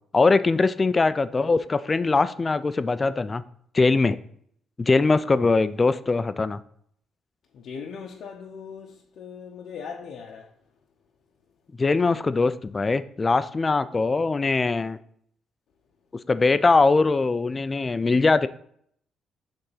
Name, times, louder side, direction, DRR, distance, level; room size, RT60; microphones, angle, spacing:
voice 1, 0.1-3.4 3.7-4.2 4.8-6.6 11.8-15.0 16.3-18.5, left 3 dB, 30° left, 0.4 m, -21 dB
voice 2, 7.5-10.5, left 6 dB, 70° left, 0.8 m, -39 dB
6.7 x 3.5 x 5.6 m
cardioid pair, 90°, 0 cm